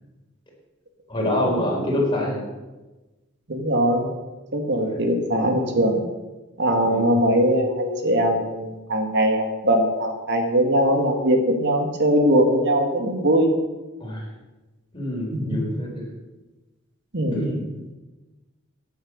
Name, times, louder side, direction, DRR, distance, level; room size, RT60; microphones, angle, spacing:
voice 1, 1.1-2.4 6.8-7.3 14.0-14.3 14.9-16.1 17.3-17.7, left 1 dB, 25° left, -2 dB, 4.5 m, -26 dB
voice 2, 3.5-4.1 4.5-6.0 6.6-13.5 15.3-15.6 17.1-17.4, equal, 55° right, 4 dB, 2.1 m, -21 dB
16.5 x 9.4 x 6.5 m, 1.2 s
head